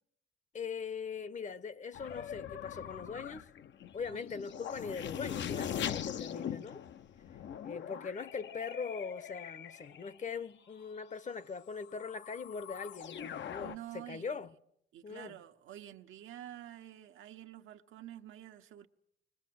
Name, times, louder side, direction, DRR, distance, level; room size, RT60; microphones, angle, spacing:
voice 1, 0.5-3.4 3.9-6.8 7.6-14.5 15.0-15.4, left 5 dB, 40° left, 0.9 m, -41 dB
sound 1, 1.9-10.2 11.3-11.4 11.7-13.8, left 9 dB, 65° left, 0.9 m, -42 dB
voice 2, 13.6-14.4 14.9-18.9, right 12 dB, 80° right, 1.2 m, -49 dB
22.0 x 21.5 x 7.8 m
cardioid pair, 90°, 20 cm